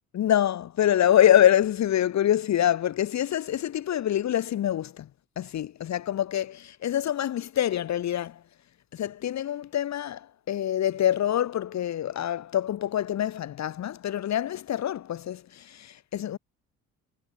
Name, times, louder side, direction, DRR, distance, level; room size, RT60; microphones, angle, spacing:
voice 1, 0.1-5.1 5.4-8.4 8.9-16.4, left 11 dB, 40° left, 1.1 m, -25 dB
figure-of-eight pair, 50°, 42 cm